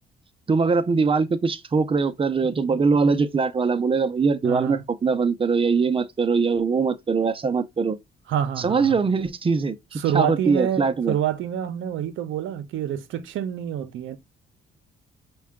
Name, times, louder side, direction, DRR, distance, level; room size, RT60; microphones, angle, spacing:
voice 1, 0.5-8.0 8.6-11.1, right 4 dB, 25° right, 0.5 m, -22 dB
voice 2, 4.4-4.8 8.3-9.0 10.0-14.2, right 10 dB, 75° right, 0.7 m, -27 dB
5.4 x 2.3 x 3.5 m
cardioid pair, 90°, 20 cm